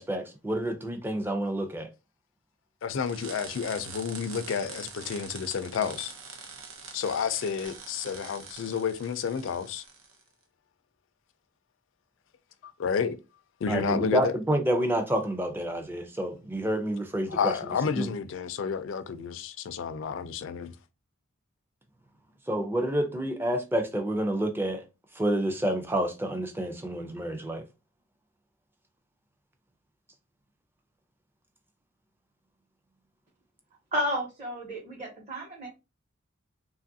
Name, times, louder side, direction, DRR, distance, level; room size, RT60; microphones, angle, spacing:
voice 1, 0.0-1.9 13.7-18.1 22.5-24.8 25.2-27.6, right 1 dB, 10° right, 0.4 m, -29 dB
voice 2, 2.8-6.1 6.9-9.8 12.6-13.2 13.6-14.4 17.3-20.7, left 6 dB, 70° left, 0.4 m, -30 dB
sound 1, 3.0-10.2, right 5 dB, 90° right, 0.6 m, -44 dB
voice 3, 33.9-35.7, equal, 35° right, 0.9 m, -32 dB
3.0 x 2.4 x 2.6 m
head